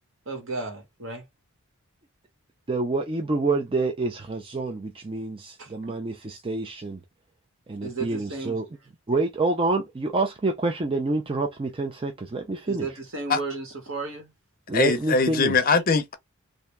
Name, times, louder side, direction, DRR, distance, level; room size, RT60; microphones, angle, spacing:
voice 1, 0.2-1.2 5.6-5.7 7.8-8.6 12.7-14.3, right 3 dB, 70° right, 1.6 m, -34 dB
voice 2, 2.7-7.0 7.7-8.7 9.1-12.9 14.7-15.5, right 3 dB, 25° right, 0.4 m, -27 dB
voice 3, 14.7-16.1, left 4 dB, 45° left, 0.6 m, -22 dB
3.4 x 2.6 x 3.2 m
head